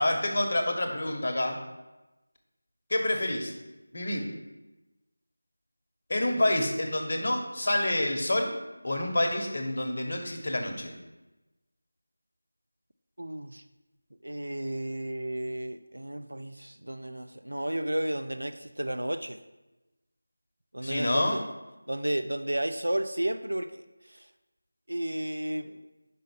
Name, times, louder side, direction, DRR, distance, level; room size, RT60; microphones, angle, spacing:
voice 1, 0.0-1.6 2.9-3.5 3.9-4.3 6.1-8.5 8.8-10.9 20.8-21.4, left 1 dB, 45° left, 3 dB, 1.1 m, -28 dB
voice 2, 13.2-13.6 14.2-19.4 20.7-21.4 21.9-24.3 24.9-25.8, right 1 dB, 75° right, 9 dB, 0.4 m, -32 dB
5.5 x 5.2 x 5.3 m, 1.0 s
figure-of-eight pair, 165°, 0 cm